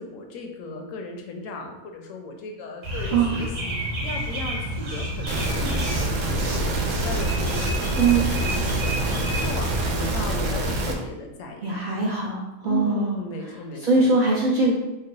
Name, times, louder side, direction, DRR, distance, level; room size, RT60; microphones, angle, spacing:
voice 1, 0.0-11.8 12.6-14.1, left 2 dB, 70° left, 3 dB, 0.9 m, -36 dB
sound 1, 2.8-9.8, equal, 55° right, 1.1 m, -30 dB
sound 2, 5.3-10.9, right 2 dB, 90° right, 1.1 m, -26 dB
voice 2, 11.6-13.2 13.8-14.7, right 3 dB, 75° right, -5 dB, 0.4 m, -21 dB
3.1 x 2.2 x 3.8 m, 1.0 s
omnidirectional pair, 1.4 m